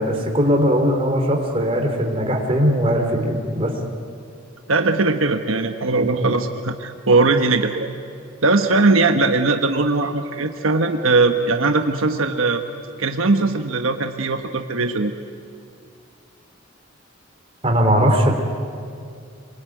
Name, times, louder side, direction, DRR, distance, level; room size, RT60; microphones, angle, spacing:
voice 1, 0.0-3.7 6.0-6.3 17.6-18.3, equal, 30° right, 2 dB, 3.4 m, -19 dB
voice 2, 4.7-7.9 8.4-12.6 13.0-15.1, right 3 dB, 80° right, 5 dB, 1.2 m, -19 dB
27.5 x 22.0 x 9.3 m, 2.4 s
head